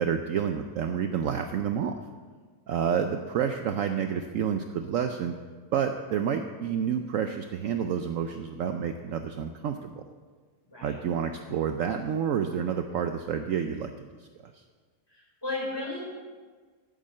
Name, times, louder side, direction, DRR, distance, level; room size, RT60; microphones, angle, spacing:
voice 1, 0.0-1.9 2.7-5.3 5.7-10.0 10.8-13.9 14.2-14.6, right 8 dB, 65° right, 7 dB, 0.9 m, -29 dB
voice 2, 10.7-11.0 15.1-16.0, left 2 dB, 15° left, -3 dB, 4.6 m, -34 dB
10.5 x 8.9 x 7.6 m, 1.5 s
omnidirectional pair, 1.6 m